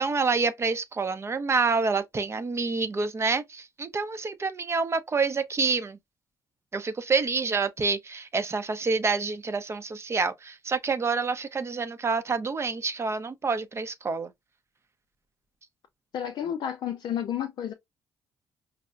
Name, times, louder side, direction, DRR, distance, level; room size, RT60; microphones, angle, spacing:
voice 1, 0.0-6.0 6.7-14.3, right 4 dB, 35° right, 0.5 m, -27 dB
voice 2, 16.1-17.7, left 9 dB, 65° left, 0.4 m, -31 dB
4.5 x 2.0 x 2.4 m
supercardioid pair, 65°, 8 cm